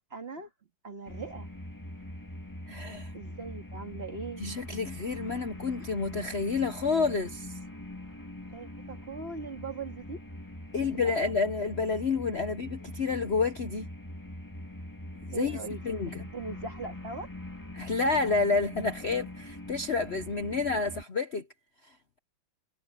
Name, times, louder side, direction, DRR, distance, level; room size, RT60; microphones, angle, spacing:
voice 1, 0.1-0.5 0.8-1.5 3.1-4.4 8.5-10.2 10.8-11.3 15.3-17.3, right 4 dB, 30° right, 2.1 m, -40 dB
sound 1, 1.1-21.0, left 1 dB, 10° left, 2.2 m, -43 dB
voice 2, 2.7-3.1 4.4-7.6 10.7-13.9 15.3-15.6 15.8-16.2 17.7-21.5 21.8-21.9, left 4 dB, 45° left, 1.0 m, -29 dB
omnidirectional pair, 2.1 m